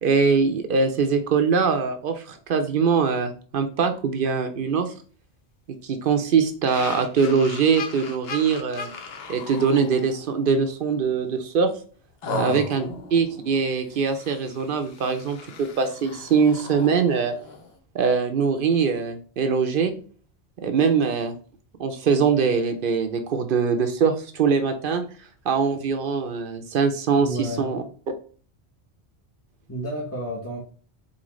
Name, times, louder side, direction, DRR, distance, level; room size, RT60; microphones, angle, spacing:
voice 1, 0.0-4.9 5.8-8.9 9.3-11.7 12.3-17.3 17.9-19.9 20.6-21.3 21.8-25.0 25.5-27.8, right 5 dB, 60° right, 8 dB, 0.7 m, -22 dB
sound 1, 6.7-10.5 11.0-11.2 12.2-17.8, left 4 dB, 70° left, 0.9 m, -37 dB
voice 2, 12.2-13.0 27.2-27.8 29.7-30.6, right 1 dB, 15° left, -4 dB, 0.7 m, -32 dB
4.0 x 3.8 x 3.0 m, 0.42 s
omnidirectional pair, 1.1 m